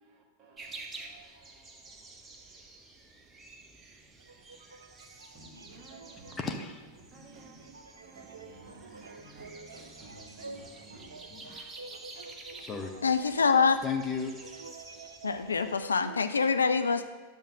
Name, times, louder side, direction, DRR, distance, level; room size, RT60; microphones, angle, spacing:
voice 1, 0.0-2.6 5.3-6.7 7.1-11.1, right 2 dB, 30° right, 1.9 m, -54 dB
sound 1, 0.6-15.9, right 3 dB, 15° right, 1.0 m, -50 dB
sound 2, 4.2-16.3, right 3 dB, 70° right, 0.5 m, -50 dB
voice 2, 6.4-6.8 11.3-11.8 12.1-12.3 12.6-13.0 13.8-14.4, left 5 dB, 20° left, 0.9 m, -35 dB
voice 3, 13.0-13.8 15.2-17.0, left 5 dB, 75° left, 0.4 m, -25 dB
10.5 x 7.1 x 3.8 m
figure-of-eight pair, 90°, 0 cm